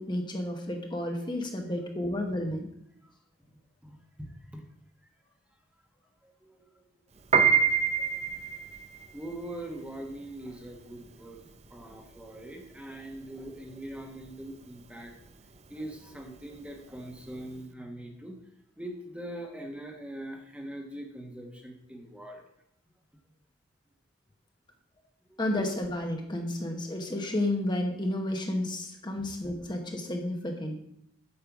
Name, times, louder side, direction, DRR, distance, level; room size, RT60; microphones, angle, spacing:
voice 1, 0.0-2.7 25.4-30.7, left 1 dB, 25° left, 2 dB, 1.1 m, -31 dB
voice 2, 3.8-4.7 6.2-6.8 7.6-8.7 9.1-11.4 11.7-15.4 15.7-18.4 18.8-22.4 25.3-25.4, right 1 dB, 5° right, 2 dB, 1.2 m, -42 dB
Piano, 7.2-17.6, right 6 dB, 35° right, 0.6 m, -29 dB
8.7 x 5.5 x 7.2 m, 0.77 s
head